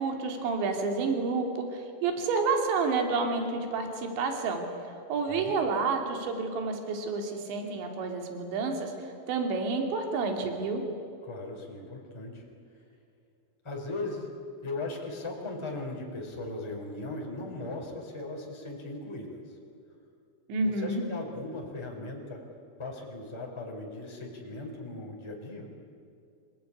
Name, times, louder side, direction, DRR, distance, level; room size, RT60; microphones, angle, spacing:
voice 1, 0.0-4.6 5.1-10.8 20.5-21.0, right 4 dB, 70° right, 4 dB, 4.9 m, -29 dB
voice 2, 11.2-12.4 13.6-14.3 14.6-19.4 20.6-22.4 22.8-25.7, left 2 dB, 5° left, -2 dB, 3.9 m, -38 dB
26.0 x 18.5 x 9.9 m, 2.5 s
omnidirectional pair, 5.5 m